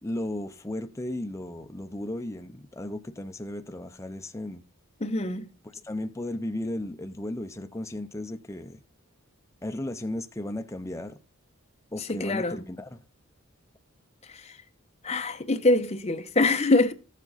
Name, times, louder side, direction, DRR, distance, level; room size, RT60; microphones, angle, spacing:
voice 1, 0.0-4.6 5.6-8.8 9.6-11.2 11.9-13.0, left 1 dB, 15° left, 0.5 m, -35 dB
voice 2, 5.0-5.5 12.1-12.6 14.4-14.5 15.0-16.9, left 2 dB, 30° left, 0.9 m, -24 dB
13.5 x 7.4 x 4.0 m
head